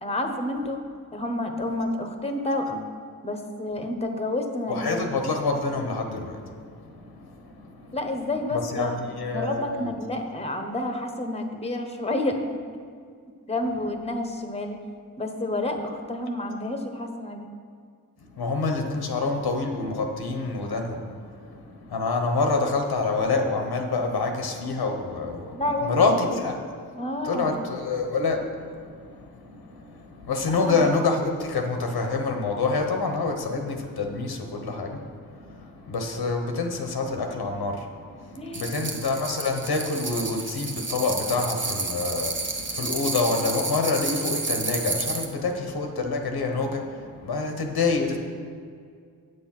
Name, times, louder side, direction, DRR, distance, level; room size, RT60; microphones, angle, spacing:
voice 1, 0.0-0.8 1.1-2.9 3.2-5.2 7.9-9.0 9.3-12.4 13.5-14.8 15.2-17.5 25.5-26.1 26.9-27.5 30.5-30.9 38.3-38.9, left 1 dB, 15° left, 5 dB, 1.0 m, -29 dB
voice 2, 4.7-8.0 8.5-9.9 18.2-26.6 27.2-48.2, left 3 dB, 80° left, 4 dB, 1.2 m, -27 dB
sound 1, 38.5-45.3, right 3 dB, 30° right, 1.0 m, -31 dB
8.0 x 6.9 x 5.8 m, 2.2 s
cardioid pair, 65°, 38 cm